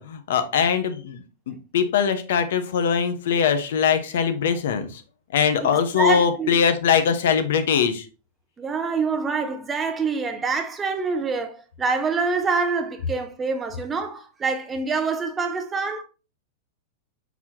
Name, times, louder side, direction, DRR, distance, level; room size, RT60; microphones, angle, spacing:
voice 1, 0.0-5.0 5.3-8.1, left 7 dB, 75° left, 0.7 m, -22 dB
voice 2, 5.6-6.5 8.6-16.0, right 4 dB, 15° right, 0.5 m, -26 dB
4.5 x 4.0 x 2.8 m
supercardioid pair, 160°, 0 cm